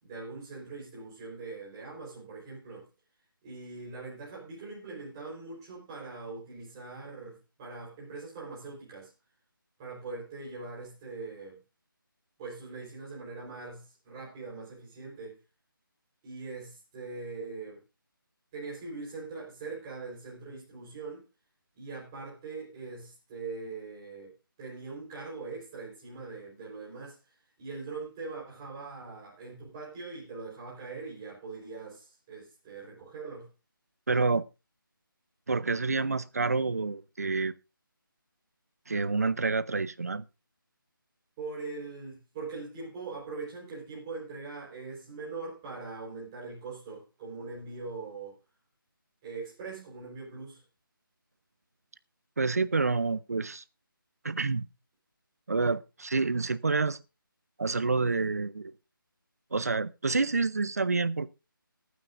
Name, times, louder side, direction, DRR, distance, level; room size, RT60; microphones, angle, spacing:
voice 1, 0.0-2.9 3.4-9.1 9.8-11.6 12.4-15.4 16.2-17.8 18.5-21.3 21.8-24.3 24.6-33.5 41.4-48.3 49.2-50.6, right 4 dB, 10° right, 4.0 m, -42 dB
voice 2, 34.1-34.4 35.5-37.5 38.9-40.2 52.4-53.6 54.2-54.7 55.5-57.0 57.6-58.7 59.5-61.3, right 3 dB, 45° right, 0.7 m, -28 dB
23.0 x 9.4 x 2.6 m
figure-of-eight pair, 180°, 12 cm